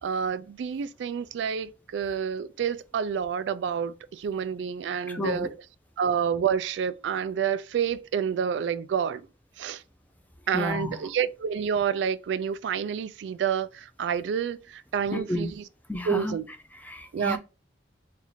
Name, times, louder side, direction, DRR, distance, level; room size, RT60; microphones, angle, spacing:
voice 1, 0.0-5.5 6.0-9.2 9.6-9.8 10.5-15.5 16.1-16.5 17.1-17.4, right 7 dB, 80° right, 0.3 m, -28 dB
voice 2, 5.1-5.5 10.5-11.0 15.1-15.5 15.9-16.4 16.7-17.4, left 1 dB, 10° left, 0.4 m, -31 dB
2.7 x 2.4 x 4.2 m
head